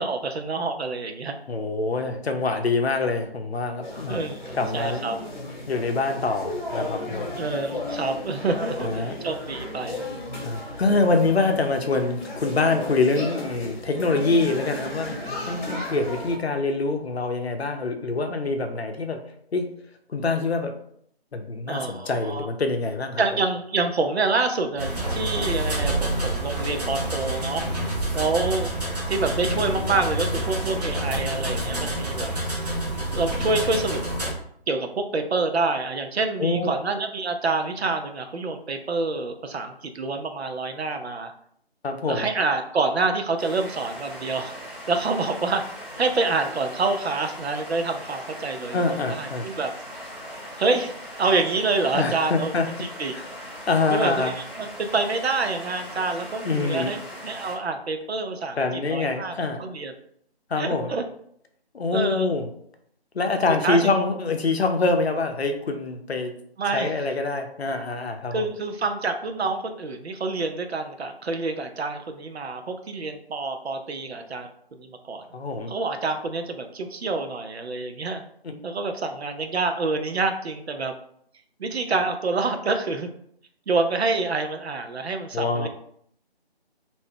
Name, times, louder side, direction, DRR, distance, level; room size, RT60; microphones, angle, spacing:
voice 1, 0.0-1.4 4.1-5.2 7.4-10.0 21.7-22.5 23.2-27.6 28.1-28.7 29.1-32.8 33.1-34.0 34.7-41.3 42.1-44.5 44.9-45.6 46.0-49.7 50.6-50.9 51.2-52.5 53.0-53.1 53.9-57.0 57.2-59.9 60.6-61.0 61.9-62.3 63.6-63.9 66.6-66.9 68.3-75.2 75.7-78.2 78.6-80.9 81.6-83.1 83.7-85.7, right 3 dB, 80° right, 6 dB, 0.5 m, -27 dB
voice 2, 1.5-4.2 4.5-5.1 5.7-7.3 8.8-9.2 10.4-15.1 15.5-19.2 19.5-19.7 20.1-20.7 21.3-23.2 36.4-36.7 41.8-42.3 48.7-49.5 51.9-52.7 53.1-53.3 53.7-54.3 56.4-56.9 58.6-59.6 60.5-60.9 61.7-62.5 63.1-66.3 66.7-68.5 75.3-75.7 78.4-78.6 85.3-85.7, left 3 dB, 75° left, 5 dB, 0.6 m, -25 dB
sound 1, 3.8-16.4, left 1 dB, 50° left, 1.0 m, -34 dB
sound 2, 24.8-34.3, right 1 dB, 40° right, 0.7 m, -28 dB
sound 3, 43.4-57.6, equal, 10° left, 0.7 m, -40 dB
2.6 x 2.2 x 3.5 m, 0.67 s
figure-of-eight pair, 160°, 32 cm